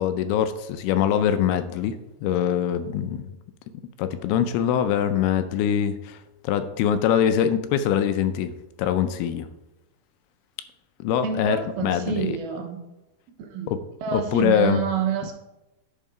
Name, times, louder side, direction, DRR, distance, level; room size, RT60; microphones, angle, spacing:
voice 1, 0.0-3.3 4.0-6.2 6.4-9.5 11.0-12.4 13.7-13.8 14.1-14.8, left 9 dB, 80° left, 10 dB, 2.5 m, -23 dB
voice 2, 11.2-12.8 13.4-13.7 14.0-15.3, right 7 dB, 75° right, 3 dB, 2.7 m, -27 dB
11.0 x 4.6 x 4.9 m, 0.96 s
omnidirectional pair, 4.7 m